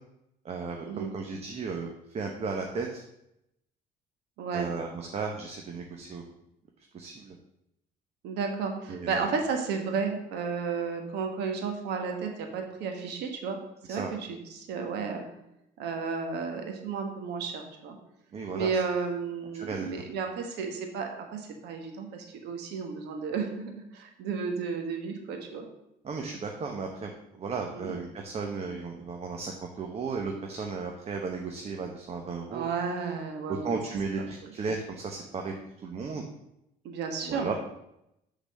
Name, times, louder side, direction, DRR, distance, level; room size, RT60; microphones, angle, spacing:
voice 1, 0.4-3.0 4.5-6.2 6.9-7.3 8.9-9.3 14.0-14.1 18.3-18.7 19.5-19.9 26.0-27.1 27.4-32.7 33.5-35.5 35.8-36.2 37.2-37.5, right 4 dB, 40° right, 2 dB, 0.9 m, -35 dB
voice 2, 4.4-4.7 8.2-13.6 13.9-15.2 15.8-18.0 18.5-25.7 27.7-28.0 32.5-33.8 36.8-37.5, right 5 dB, 85° right, 4 dB, 1.4 m, -33 dB
6.7 x 4.0 x 6.4 m, 0.83 s
cardioid pair, 110°, 17 cm